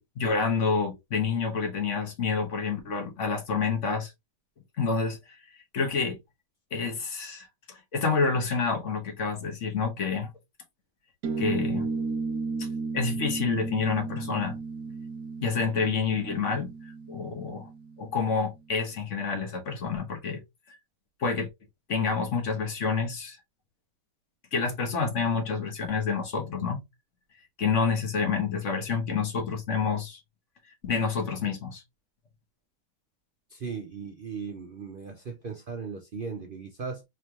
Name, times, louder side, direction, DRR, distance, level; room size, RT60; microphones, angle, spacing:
voice 1, 0.0-4.1 4.8-5.4 5.7-6.2 6.7-10.3 11.4-11.9 12.6-12.7 12.9-14.6 15.4-17.7 18.0-20.4 21.2-21.5 21.9-23.4 24.5-26.8 27.6-30.2 30.9-31.8, left 5 dB, 50° left, 1.4 m, -28 dB
sound 1, 11.2-18.2, right 4 dB, 65° right, 1.1 m, -34 dB
voice 2, 33.5-37.0, right 5 dB, 85° right, 0.4 m, -37 dB
3.7 x 3.2 x 2.8 m
omnidirectional pair, 1.9 m